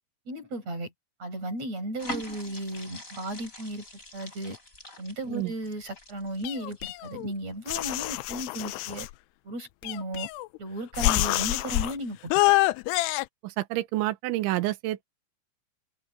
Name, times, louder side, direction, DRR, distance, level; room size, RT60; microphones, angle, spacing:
voice 1, 0.3-0.9 1.2-3.9 4.1-4.6 5.0-9.1 9.4-10.3 10.6-12.5, right 1 dB, 35° right, 9.2 m, -35 dB
sound 1, 2.0-7.4 7.8-7.9, equal, 15° left, 6.9 m, -43 dB
sound 2, 6.4-7.3 7.7-9.1 9.8-10.6 11.0-11.9 12.3-13.3, left 19 dB, 80° left, 2.4 m, -26 dB
voice 2, 13.4-15.1, right 16 dB, 85° right, 3.4 m, -29 dB
omnidirectional pair, 5.2 m